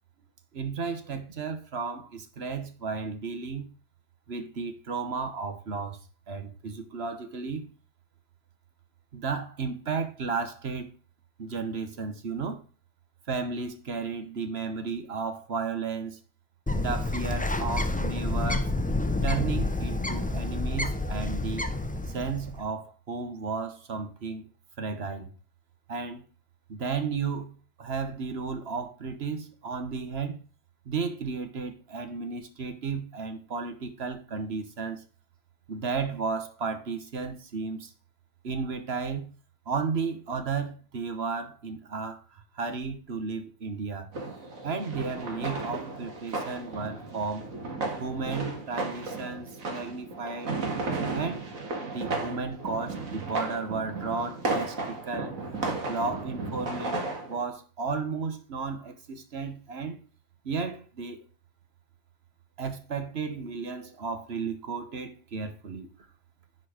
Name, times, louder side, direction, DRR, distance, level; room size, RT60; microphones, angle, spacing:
voice 1, 0.5-3.7 4.3-6.0 6.3-7.7 9.1-10.9 11.4-12.6 13.3-16.2 16.7-18.7 19.2-21.7 22.1-24.5 24.8-25.3 25.9-26.2 26.7-30.4 30.8-35.0 35.7-37.9 38.4-39.3 39.7-44.1 44.6-47.5 48.0-50.5 51.1-51.5 51.8-55.3 55.9-57.0 57.3-60.0 60.4-61.3 62.6-65.9, right 5 dB, 50° right, 1.3 m, -33 dB
Bird, 16.7-22.6, left 2 dB, 10° left, 0.4 m, -29 dB
sound 1, 44.1-57.4, right 3 dB, 90° right, 2.2 m, -34 dB
10.5 x 4.6 x 4.9 m
omnidirectional pair, 1.4 m